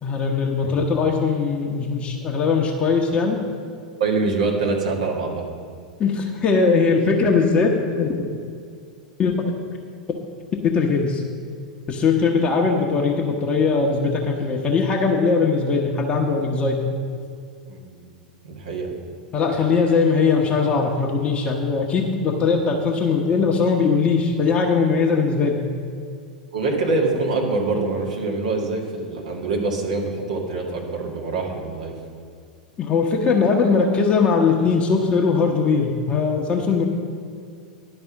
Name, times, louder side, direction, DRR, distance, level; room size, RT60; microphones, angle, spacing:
voice 1, 0.0-3.4 6.0-8.3 9.2-9.4 10.7-11.2 11.9-16.8 19.3-25.6 32.8-36.9, left 4 dB, 25° left, -1 dB, 1.0 m, -20 dB
voice 2, 4.0-5.5 17.7-18.1 18.4-18.9 26.5-31.9, right 3 dB, 65° right, -1 dB, 1.9 m, -25 dB
11.0 x 5.3 x 7.2 m, 2.2 s
figure-of-eight pair, 90°, 4 cm